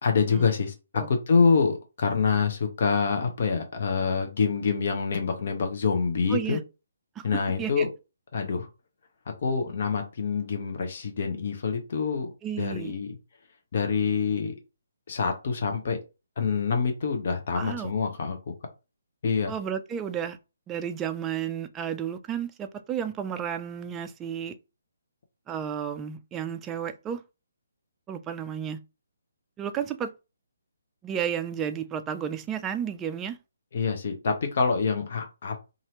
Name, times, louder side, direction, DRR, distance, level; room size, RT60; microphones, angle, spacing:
voice 1, 0.0-6.6 7.2-7.9 8.3-8.7 9.4-12.3 12.6-13.1 13.7-14.5 15.1-16.0 16.4-18.5 19.2-19.5 33.7-35.6, left 5 dB, 50° left, 0.7 m, -26 dB
voice 2, 6.3-6.6 7.2-7.3 7.6-7.9 12.4-12.9 17.5-17.9 19.5-20.4 20.7-24.5 25.5-27.2 28.1-28.8 29.6-30.1 31.0-33.4, right 8 dB, 15° right, 0.3 m, -32 dB
2.7 x 2.5 x 3.0 m
figure-of-eight pair, 140°, 0 cm